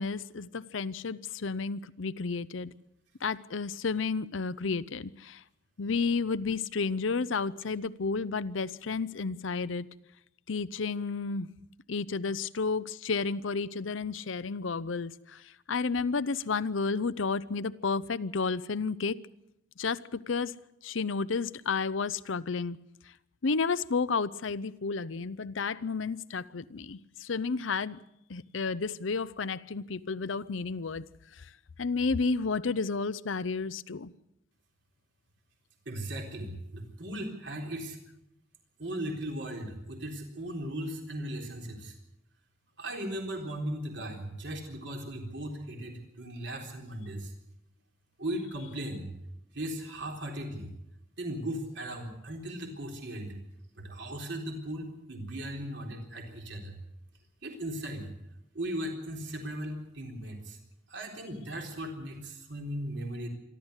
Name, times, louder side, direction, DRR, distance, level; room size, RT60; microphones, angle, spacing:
voice 1, 0.0-2.7 3.2-5.4 5.8-9.9 10.5-11.5 11.9-19.2 19.8-20.5 20.8-22.8 23.4-28.0 28.3-31.0 31.4-31.5 31.8-34.1, left 4 dB, 75° left, 0.7 m, -31 dB
voice 2, 35.9-38.0 38.8-41.9 42.8-47.3 48.2-49.1 49.5-50.7 51.2-53.4 53.8-56.8 57.4-58.1 58.5-60.6 60.9-63.3, right 1 dB, 60° right, 3.9 m, -37 dB
26.5 x 12.5 x 8.1 m
head